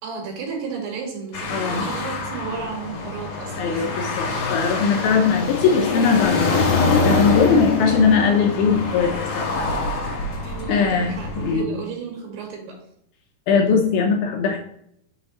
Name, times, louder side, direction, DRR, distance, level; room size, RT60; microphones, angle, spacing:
voice 1, 0.0-4.0 10.4-12.8, right 5 dB, 80° right, 1 dB, 3.3 m, -33 dB
sound 1, 1.3-11.5, left 3 dB, 60° left, 2.3 m, -25 dB
voice 2, 1.5-1.9 3.6-9.7 10.7-11.8 13.5-14.6, left 5 dB, 75° left, 2 dB, 2.4 m, -20 dB
6.8 x 3.5 x 5.5 m, 0.72 s
omnidirectional pair, 4.8 m